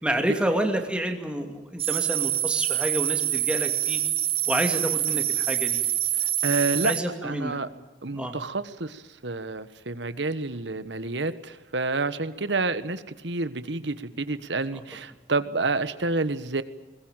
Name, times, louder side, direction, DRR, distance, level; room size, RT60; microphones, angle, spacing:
voice 1, 0.0-4.0 4.5-5.8 6.8-7.6 8.1-8.3, right 1 dB, 5° right, 4 dB, 2.6 m, -29 dB
sound 1, 1.8-7.0, right 12 dB, 30° right, 0.8 m, -26 dB
voice 2, 6.4-6.9 7.2-7.7 8.0-16.6, right 3 dB, 70° right, 13 dB, 1.4 m, -29 dB
22.5 x 20.5 x 9.1 m, 1.1 s
head